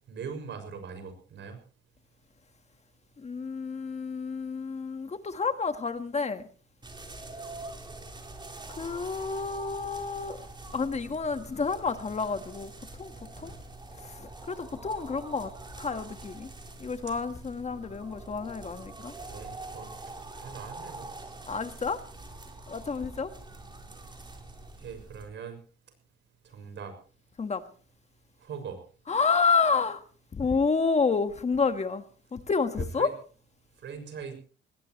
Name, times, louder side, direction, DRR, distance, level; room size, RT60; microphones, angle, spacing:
voice 1, 0.1-1.6 13.3-13.6 19.3-19.9 20.4-21.1 24.8-25.6 26.4-26.9 28.4-28.8 33.0-33.1 33.8-34.3, right 6 dB, 65° right, 6.4 m, -41 dB
voice 2, 3.2-6.4 8.8-10.5 10.7-12.7 13.0-13.1 13.4-13.6 13.9-15.5 15.8-16.5 16.8-19.1 21.5-22.0 22.7-23.3 27.4-27.6 29.1-30.0 30.3-32.0 32.3-33.1, left 5 dB, 35° left, 1.5 m, -29 dB
sound 1, 6.8-25.3, right 2 dB, 25° right, 4.3 m, -45 dB
20.0 x 18.5 x 3.2 m
cardioid pair, 90°, 20 cm